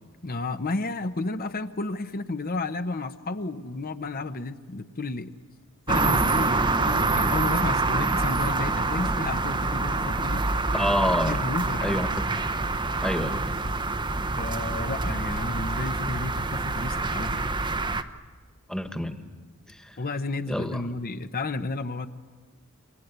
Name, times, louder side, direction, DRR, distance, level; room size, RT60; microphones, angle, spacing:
voice 1, 0.2-5.3 5.9-10.4 11.3-12.0 14.4-17.5 20.0-22.1, left 3 dB, 40° left, 9 dB, 0.9 m, -32 dB
sound 1, 5.9-18.0, right 3 dB, 20° right, 0.8 m, -26 dB
voice 2, 10.7-11.4 11.8-12.1 13.0-13.6 18.7-19.2 19.8-20.0 20.5-20.8, equal, 5° left, 7 dB, 1.5 m, -27 dB
28.5 x 24.0 x 8.2 m, 1.4 s
head